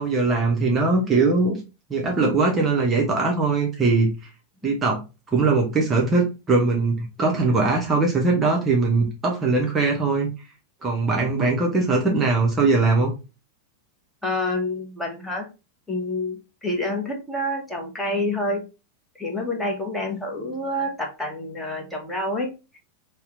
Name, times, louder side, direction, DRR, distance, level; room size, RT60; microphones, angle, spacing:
voice 1, 0.0-1.6 1.9-4.1 4.6-5.0 5.3-10.3 10.8-13.1, right 3 dB, 20° right, 0 dB, 0.7 m, -21 dB
voice 2, 14.2-15.5 15.9-18.7 19.2-22.8, left 1 dB, 10° left, 0 dB, 0.9 m, -28 dB
2.8 x 2.1 x 3.6 m, 0.29 s
figure-of-eight pair, 90°, 0 cm